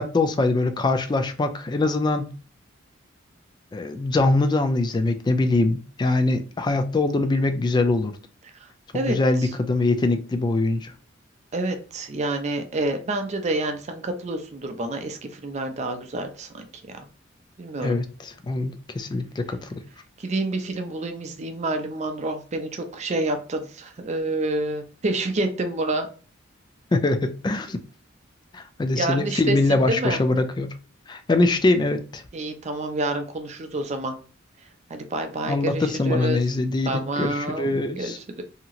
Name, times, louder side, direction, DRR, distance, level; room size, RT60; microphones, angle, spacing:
voice 1, 0.0-2.3 3.7-8.1 8.9-10.9 17.8-19.8 26.9-27.8 28.5-30.7 31.1-32.2 35.5-38.2, left 2 dB, 20° left, 0.3 m, -23 dB
voice 2, 8.5-9.5 11.5-16.7 16.9-17.1 17.6-18.0 20.2-26.1 29.0-30.2 32.3-34.2 34.9-36.4 36.9-38.5, right 2 dB, 35° right, 0.5 m, -28 dB
2.8 x 2.8 x 2.4 m
head